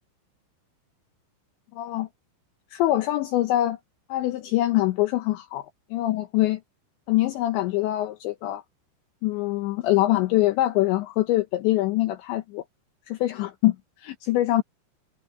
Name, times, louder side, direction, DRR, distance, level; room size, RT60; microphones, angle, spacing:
voice 1, 1.7-2.1 2.7-3.8 4.1-6.6 7.1-8.6 9.2-12.6 13.1-14.6, left 15 dB, 75° left, 3.0 m, -24 dB
omnidirectional pair, 5.9 m